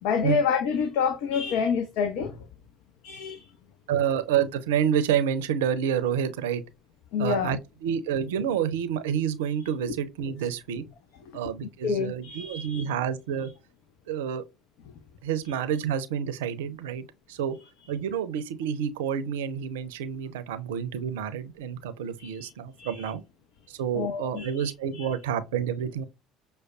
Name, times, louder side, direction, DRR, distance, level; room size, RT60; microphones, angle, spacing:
voice 1, 0.0-2.5 3.0-3.5 7.1-7.6 11.3-11.5 11.8-12.9 15.5-15.6 22.2-23.1 23.9-25.1, left 6 dB, 60° left, 0.5 m, -28 dB
voice 2, 3.9-6.6 7.2-10.8 11.3-13.5 14.1-14.4 15.2-17.6 17.9-23.2 23.7-26.0, right 8 dB, 70° right, 0.5 m, -28 dB
6.2 x 2.2 x 2.4 m
figure-of-eight pair, 60°, 0 cm